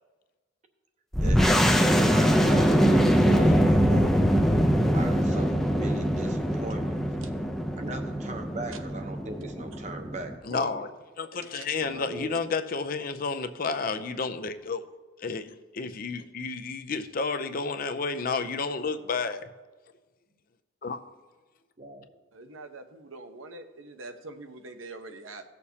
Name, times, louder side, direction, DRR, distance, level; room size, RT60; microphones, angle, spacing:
sound 1, 1.1-10.3, equal, ahead, 0.5 m, -23 dB
voice 1, 1.2-4.2 4.9-7.0 7.8-10.9 11.7-12.4 21.8-22.1, right 2 dB, 35° right, 5 dB, 0.9 m, -39 dB
voice 2, 10.4-10.9 11.2-14.9 15.2-19.5 20.8-21.0, left 4 dB, 45° left, 9 dB, 0.5 m, -31 dB
voice 3, 22.3-25.4, right 2 dB, 90° right, 6 dB, 0.9 m, -44 dB
16.5 x 6.6 x 2.8 m, 1.3 s
head